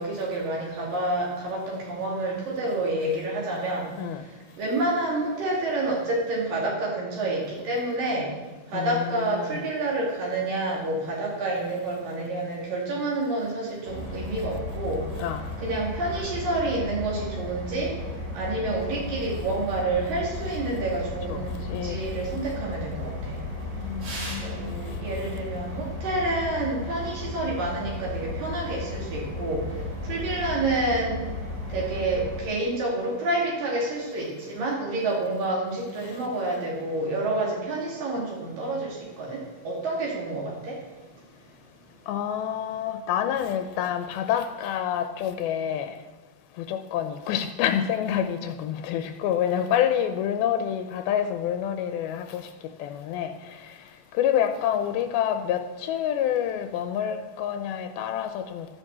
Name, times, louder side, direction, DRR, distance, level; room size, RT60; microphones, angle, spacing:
voice 1, 0.0-3.9 4.6-8.3 8.7-15.0 15.6-17.9 18.3-23.4 24.4-29.6 30.1-31.1 31.7-39.4 39.7-40.8, right 2 dB, 65° right, -3 dB, 4.0 m, -28 dB
voice 2, 8.7-9.7 15.2-15.4 21.3-22.0 23.8-24.8 42.1-45.9 46.6-52.5 52.8-53.7 54.2-58.7, left 9 dB, 85° left, 8 dB, 2.6 m, -28 dB
sound 1, 13.8-32.4, left 2 dB, 45° right, 4.0 m, -34 dB
13.0 x 10.0 x 7.4 m, 1.2 s
omnidirectional pair, 4.2 m